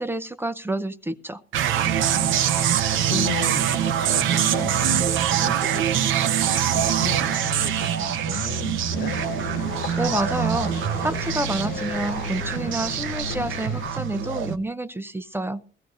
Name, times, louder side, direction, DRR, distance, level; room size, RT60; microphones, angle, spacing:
voice 1, 0.0-1.4 10.0-15.6, right 1 dB, 10° right, 12 dB, 0.5 m, -29 dB
sound 1, 1.5-14.6, right 9 dB, 80° right, 0.7 m, -24 dB
voice 2, 1.9-6.4 6.6-9.2, left 5 dB, 80° left, 5 dB, 1.5 m, -35 dB
sound 2, 8.9-13.9, left 7 dB, 60° left, 0.7 m, -35 dB
21.0 x 14.5 x 2.6 m, 0.40 s
cardioid pair, 90°, 20 cm